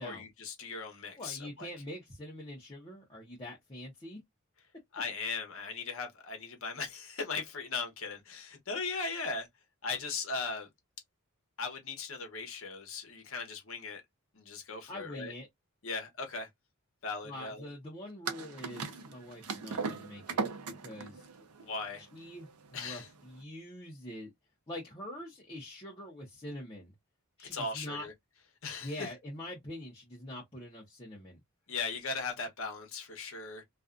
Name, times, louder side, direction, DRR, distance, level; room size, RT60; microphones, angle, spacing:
voice 1, 0.0-1.7 4.9-9.5 9.8-10.7 11.6-14.0 14.3-15.3 15.8-16.5 17.0-17.7 21.6-22.1 22.7-23.1 27.4-28.1 28.6-29.1 31.7-33.6, left 4 dB, 65° left, 0.9 m, -38 dB
voice 2, 1.2-4.2 14.9-15.5 17.2-20.4 20.8-21.2 22.1-24.3 24.7-26.9 27.4-28.1 28.8-31.4, left 1 dB, 25° left, 0.7 m, -44 dB
sound 1, 18.3-23.4, right 4 dB, 90° right, 0.6 m, -38 dB
2.5 x 2.3 x 2.4 m
head